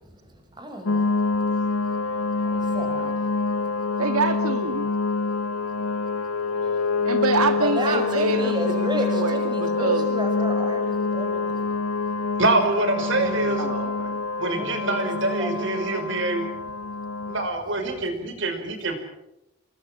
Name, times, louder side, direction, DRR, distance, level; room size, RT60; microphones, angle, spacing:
voice 1, 0.1-1.1 2.4-3.3 7.6-11.6 13.0-13.6 14.4-16.2, right 1 dB, 20° right, 5 dB, 6.2 m, -32 dB
sound 1, 0.9-17.5, left 4 dB, 85° left, 1.0 m, -26 dB
voice 2, 4.0-5.0 7.0-10.1 13.6-14.2, right 3 dB, 85° right, 8 dB, 1.7 m, -26 dB
voice 3, 12.4-13.6 14.4-16.5 17.3-19.0, right 2 dB, 55° right, 7 dB, 5.2 m, -25 dB
28.0 x 23.5 x 6.3 m, 0.87 s
head